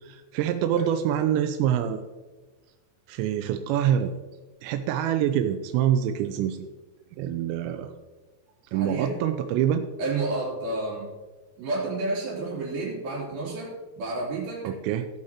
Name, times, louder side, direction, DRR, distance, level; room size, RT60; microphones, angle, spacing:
voice 1, 0.0-2.0 3.1-4.1 4.6-6.7 7.2-7.9 8.7-9.9 14.6-15.1, right 10 dB, 90° right, 7 dB, 2.8 m, -25 dB
voice 2, 8.7-9.1 10.0-11.1 11.6-14.7, right 2 dB, 60° right, -5 dB, 4.8 m, -30 dB
16.0 x 8.6 x 2.9 m, 1.3 s
omnidirectional pair, 5.0 m